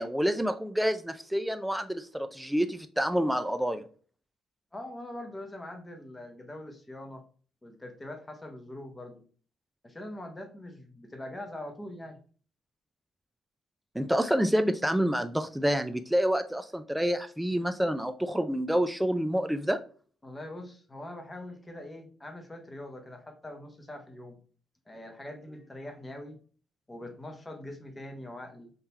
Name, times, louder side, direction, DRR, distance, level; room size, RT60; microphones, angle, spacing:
voice 1, 0.0-3.8 14.0-19.8, equal, 5° right, 0.4 m, -28 dB
voice 2, 4.7-7.2 7.6-9.2 9.8-12.2 20.2-24.4 24.9-26.4 26.9-28.7, left 1 dB, 20° left, 1.0 m, -43 dB
3.7 x 2.8 x 4.4 m
cardioid pair, 90°, 0 cm